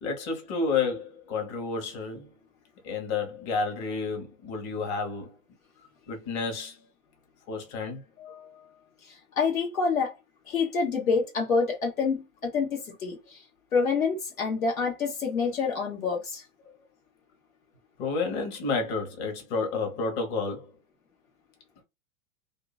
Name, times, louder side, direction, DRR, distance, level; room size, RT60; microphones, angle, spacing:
voice 1, 0.0-2.3 2.8-5.3 6.1-6.8 7.5-8.7 18.0-20.7, left 4 dB, 55° left, 1.3 m, -31 dB
voice 2, 9.4-10.1 10.5-13.4 13.7-16.4, left 5 dB, 90° left, 1.2 m, -27 dB
2.8 x 2.5 x 2.4 m
hypercardioid pair, 105°, 40 cm